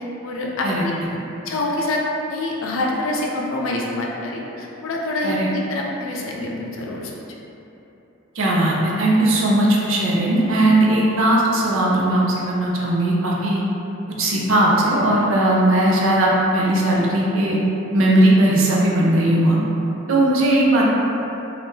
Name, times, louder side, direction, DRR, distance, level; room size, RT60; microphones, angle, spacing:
voice 1, 0.2-0.9 1.5-2.0 2.3-7.2, left 2 dB, 80° left, -2 dB, 0.4 m, -26 dB
voice 2, 8.4-13.6 14.2-17.6 17.9-19.6 20.1-20.8, right 1 dB, 80° right, -4 dB, 0.5 m, -18 dB
2.7 x 2.4 x 3.5 m, 3.0 s
head